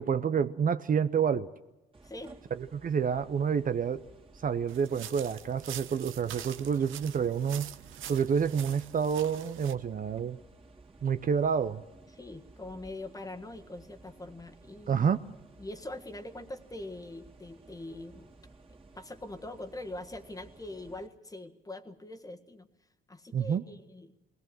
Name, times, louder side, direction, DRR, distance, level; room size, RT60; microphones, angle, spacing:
voice 1, 0.0-1.5 2.6-4.0 4.4-7.7 8.1-10.4 11.0-11.8 14.9-15.2 23.3-23.6, right 7 dB, 45° right, 11 dB, 0.7 m, -28 dB
sound 1, 1.9-21.1, right 2 dB, 25° right, 2.6 m, -56 dB
voice 2, 2.0-2.3 12.1-15.1 15.6-18.3 18.9-22.7 23.1-24.1, left 2 dB, 15° left, 5 dB, 1.5 m, -43 dB
sound 2, 4.7-9.7, right 11 dB, 85° right, 0.9 m, -45 dB
20.0 x 18.0 x 7.7 m, 1.0 s
cardioid pair, 90°, 20 cm